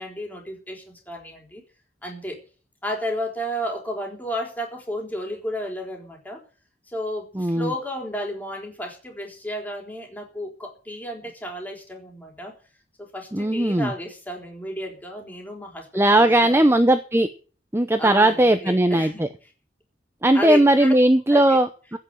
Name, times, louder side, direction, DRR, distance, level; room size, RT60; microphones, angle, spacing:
voice 1, 0.0-1.6 2.0-2.4 2.8-6.4 6.9-12.5 13.0-16.6 18.0-19.3 20.3-20.9 21.3-21.6, equal, 10° left, 1 dB, 4.1 m, -32 dB
voice 2, 7.3-7.7 13.3-13.9 15.9-17.3 17.7-19.3 20.2-22.0, right 1 dB, 15° right, 8 dB, 0.7 m, -18 dB
16.0 x 6.2 x 9.0 m, 0.39 s
head